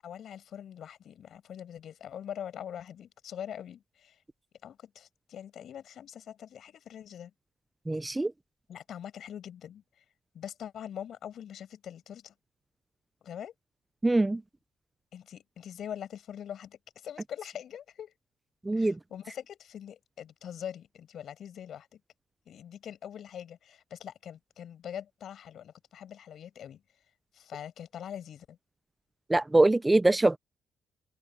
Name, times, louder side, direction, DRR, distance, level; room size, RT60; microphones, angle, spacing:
voice 1, 0.0-4.2 4.6-7.3 8.7-9.8 10.3-12.3 13.2-13.5 15.1-18.1 18.7-22.0 22.5-26.8 27.3-28.6, left 9 dB, 65° left, 7.3 m, -43 dB
voice 2, 7.9-8.3 14.0-14.4 18.6-19.0 29.3-30.4, right 2 dB, 15° right, 0.6 m, -23 dB
open air
cardioid pair, 90°, 0 cm